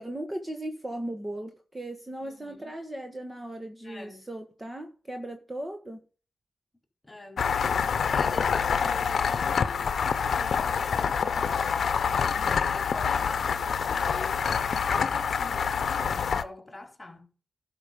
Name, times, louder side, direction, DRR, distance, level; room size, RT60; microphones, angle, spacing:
voice 1, 0.0-6.0 12.3-12.6, right 1 dB, 20° right, 1.7 m, -37 dB
voice 2, 2.2-2.8 3.8-4.2 7.0-7.5 8.1-9.6 10.3-11.4 12.6-17.3, left 2 dB, 15° left, 4.2 m, -44 dB
sound 1, 7.4-16.4, left 6 dB, 65° left, 0.9 m, -26 dB
11.5 x 5.3 x 5.4 m
cardioid pair, 60°, 0 cm